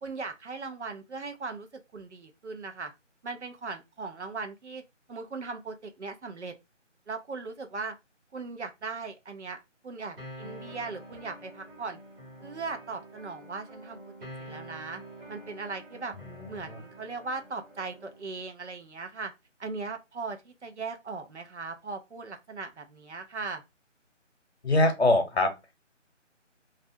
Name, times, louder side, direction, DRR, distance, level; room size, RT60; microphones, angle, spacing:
voice 1, 0.0-1.7 1.9-2.9 3.2-4.8 5.1-6.5 7.1-7.9 8.3-9.6 9.8-12.0 12.4-14.0 14.4-15.0 15.3-16.1 16.5-19.3 19.6-23.6, right 4 dB, 65° right, 0.6 m, -38 dB
sound 1, 10.2-18.2, right 1 dB, 45° right, 1.3 m, -47 dB
voice 2, 16.3-16.8 24.6-25.5, left 2 dB, 55° left, 0.8 m, -24 dB
2.4 x 2.1 x 2.6 m
figure-of-eight pair, 175°, 38 cm